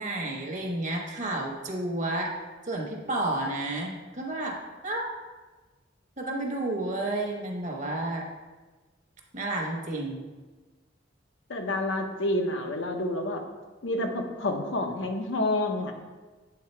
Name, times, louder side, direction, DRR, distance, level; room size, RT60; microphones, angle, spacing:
voice 1, 0.0-2.3 2.7-4.6 4.8-5.1 6.2-8.3 9.3-10.3, right 2 dB, 40° right, 1 dB, 1.0 m, -31 dB
voice 2, 11.5-13.4 13.8-15.9, left 1 dB, 75° left, 4 dB, 0.8 m, -28 dB
7.8 x 3.7 x 4.4 m, 1.3 s
head